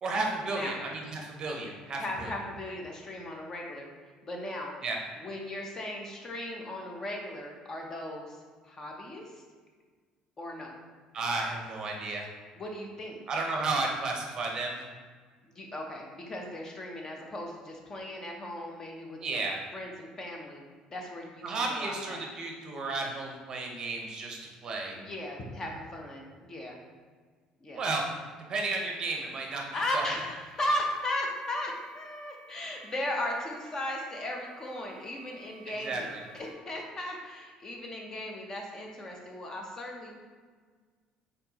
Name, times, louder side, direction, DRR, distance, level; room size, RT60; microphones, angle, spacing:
voice 1, 0.0-2.3 4.8-5.0 11.1-12.3 13.3-14.8 19.2-19.6 21.4-25.0 27.7-28.0 28.5-30.0 35.8-36.2, right 3 dB, 35° right, 1 dB, 0.7 m, -33 dB
voice 2, 2.0-3.9 4.2-4.7 5.2-8.4 8.6-9.4 10.4-10.7 12.5-13.2 15.4-19.2 19.7-20.6 20.9-22.2 24.9-26.8 27.6-27.8 29.7-40.1, left 1 dB, 25° left, 1 dB, 0.7 m, -37 dB
sound 1, 30.1-36.5, right 4 dB, 60° left, 0.9 m, -56 dB
4.3 x 3.8 x 2.8 m, 1.5 s
cardioid pair, 145°, 2 cm